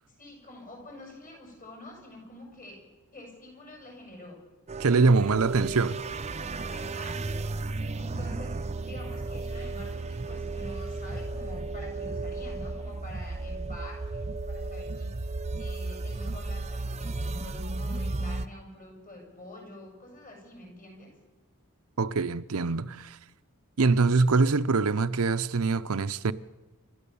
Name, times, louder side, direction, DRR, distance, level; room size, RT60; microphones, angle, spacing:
voice 1, 0.2-2.8 3.1-4.4 6.7-7.5 8.0-15.1 15.6-21.1, left 1 dB, 40° left, 7.2 m, -47 dB
sound 1, 4.7-18.5, right 3 dB, 30° right, 0.6 m, -34 dB
voice 2, 4.8-6.0 22.0-23.2 23.8-26.3, right 4 dB, 70° right, 0.7 m, -24 dB
28.5 x 13.0 x 7.0 m
head